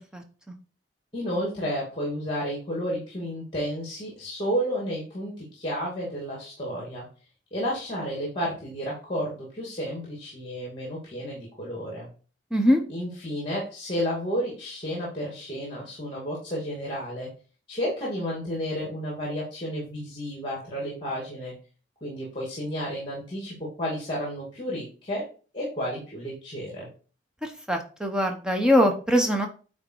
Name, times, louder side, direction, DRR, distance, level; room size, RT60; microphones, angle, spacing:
voice 1, 1.1-7.1 7.5-12.1 12.9-17.3 17.7-21.5 22.0-25.2 25.5-26.9, equal, 25° left, -4 dB, 2.7 m, -31 dB
voice 2, 12.5-12.8 27.4-29.5, equal, 5° right, 3 dB, 1.0 m, -22 dB
9.5 x 3.8 x 4.7 m, 0.37 s
head